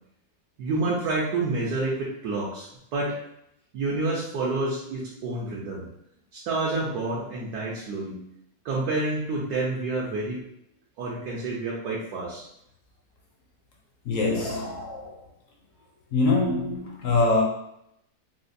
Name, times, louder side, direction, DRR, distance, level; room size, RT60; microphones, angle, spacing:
voice 1, 0.6-3.2 3.7-5.9 6.3-8.2 8.6-10.4 11.0-12.4, right 2 dB, 70° right, 1.2 m, -28 dB
voice 2, 14.0-15.2 16.1-17.4, left 3 dB, 65° left, 0.9 m, -24 dB
4.1 x 2.2 x 2.6 m
omnidirectional pair, 1.8 m